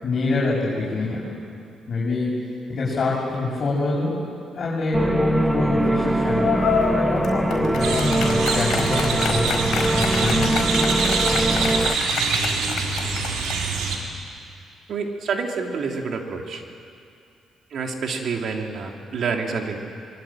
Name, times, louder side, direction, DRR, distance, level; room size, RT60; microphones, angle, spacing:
voice 1, 0.0-1.3 1.9-4.1 4.5-6.6 6.9-9.5 9.9-11.2, left 2 dB, 50° left, -6 dB, 7.4 m, -25 dB
sound 1, 4.9-12.0, right 2 dB, 10° right, 0.9 m, -23 dB
sound 2, 6.4-13.8, left 7 dB, 75° left, 4.5 m, -28 dB
sound 3, 7.8-14.0, right 4 dB, 90° right, 3.6 m, -25 dB
voice 2, 14.9-16.6 17.7-19.8, right 5 dB, 60° right, 2 dB, 3.1 m, -28 dB
25.0 x 22.5 x 9.1 m, 2.5 s
cardioid pair, 90°, 0 cm